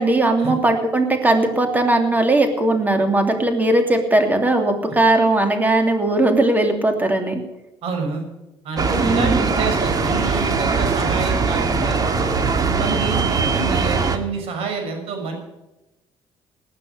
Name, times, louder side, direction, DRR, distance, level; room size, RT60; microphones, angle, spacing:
voice 1, 0.0-7.4 9.0-9.5, right 2 dB, 15° right, 5 dB, 2.9 m, -18 dB
voice 2, 7.8-8.3 8.6-12.0 12.4-15.4, right 4 dB, 75° right, 4 dB, 6.1 m, -27 dB
sound 1, 8.8-14.2, right 4 dB, 40° right, 2.0 m, -21 dB
18.5 x 9.7 x 6.7 m, 0.99 s
cardioid pair, 105°, 10 cm